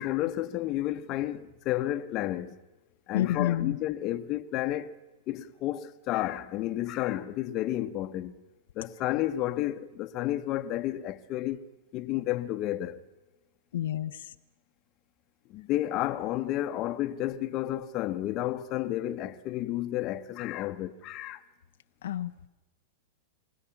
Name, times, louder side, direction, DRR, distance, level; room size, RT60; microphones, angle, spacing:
voice 1, 0.0-2.6 3.1-5.0 5.3-8.4 8.8-13.0 15.5-21.4, left 14 dB, 40° left, 0.9 m, -31 dB
voice 2, 3.1-3.8 13.7-14.2 22.0-22.3, left 12 dB, 75° left, 0.7 m, -29 dB
24.5 x 17.5 x 7.2 m
hypercardioid pair, 135°, 0 cm